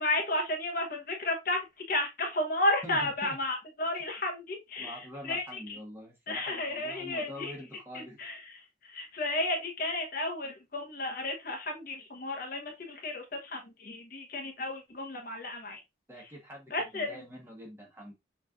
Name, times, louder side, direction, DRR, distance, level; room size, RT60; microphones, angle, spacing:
voice 1, 0.0-1.6 1.9-5.8 6.3-7.5 7.9-8.6 8.8-15.8 16.7-17.2, left 2 dB, 50° left, 2 dB, 1.1 m, -33 dB
voice 2, 2.8-3.4 4.8-8.2 16.1-18.1, equal, 15° right, -1 dB, 1.4 m, -45 dB
6.2 x 3.3 x 2.5 m, 0.21 s
head